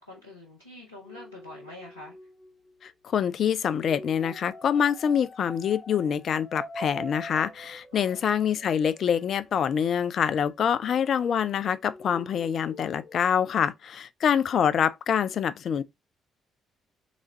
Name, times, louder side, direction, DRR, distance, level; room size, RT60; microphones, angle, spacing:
voice 1, 0.0-2.1 7.9-8.3, left 2 dB, 85° left, 0.7 m, -46 dB
sound 1, 1.1-3.1 3.7-11.5 11.8-13.2, equal, 25° left, 1.3 m, -45 dB
voice 2, 2.8-15.8, left 8 dB, 50° left, 0.4 m, -25 dB
3.4 x 3.1 x 3.8 m
figure-of-eight pair, 45°, 0 cm